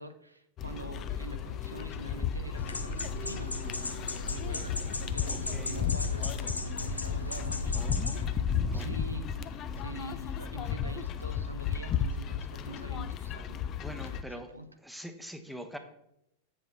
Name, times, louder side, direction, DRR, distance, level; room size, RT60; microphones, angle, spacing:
voice 1, 0.0-3.6 4.3-4.8 5.1-8.4 8.7-13.6 14.0-14.7, right 1 dB, 85° right, 7 dB, 0.6 m, -45 dB
sound 1, 0.6-14.2, left 8 dB, 35° left, 0.4 m, -34 dB
sound 2, 2.0-11.1, right 7 dB, 25° right, 0.5 m, -49 dB
sound 3, 2.6-8.3, left 2 dB, 80° left, 0.5 m, -37 dB
voice 2, 5.3-5.8 7.7-8.2 8.7-9.0 13.8-14.5 14.8-15.8, equal, ahead, 7 dB, 0.8 m, -43 dB
7.8 x 7.4 x 3.3 m, 0.78 s
figure-of-eight pair, 90°, 0 cm